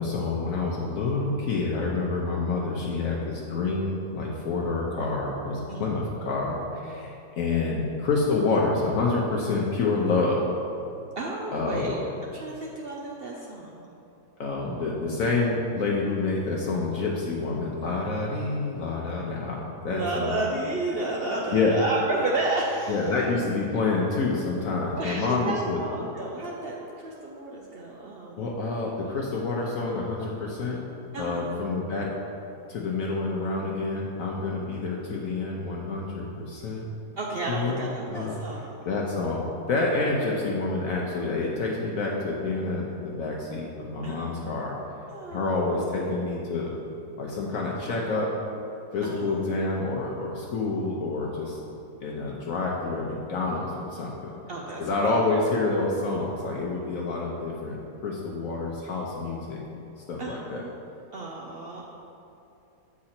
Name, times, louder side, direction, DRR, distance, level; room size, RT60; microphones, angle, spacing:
voice 1, 0.0-10.5 11.5-12.0 14.4-20.4 21.5-21.8 22.9-25.8 28.4-30.8 31.2-32.1 32.7-36.9 37.5-38.4 38.8-44.8 45.3-46.8 47.2-48.3 48.9-51.6 52.0-54.4 54.8-59.8 60.1-60.6, left 3 dB, 65° left, -2 dB, 1.0 m, -28 dB
voice 2, 11.2-12.0 12.3-13.9 19.9-23.0 25.0-28.5 31.1-31.6 37.2-38.7 44.0-44.3 45.1-45.7 49.0-49.5 54.5-55.2 60.2-60.7 61.1-61.8, right 2 dB, 90° right, -2 dB, 0.5 m, -32 dB
7.4 x 4.8 x 4.3 m, 2.7 s
omnidirectional pair, 1.7 m